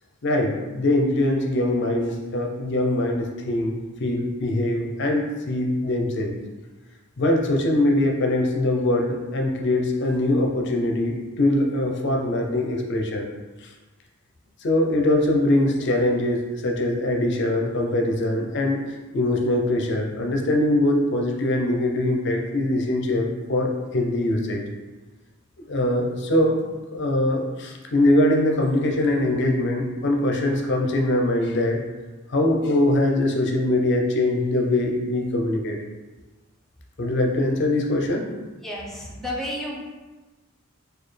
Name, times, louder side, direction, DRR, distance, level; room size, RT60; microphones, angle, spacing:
voice 1, 0.2-6.4 7.2-13.3 14.6-18.8 19.1-24.6 25.6-26.6 26.9-31.8 32.3-35.8 37.0-38.3, left 1 dB, 55° left, 1 dB, 0.5 m, -22 dB
voice 2, 38.6-39.8, left 1 dB, ahead, -4 dB, 0.5 m, -31 dB
4.1 x 2.3 x 3.2 m, 1.2 s
head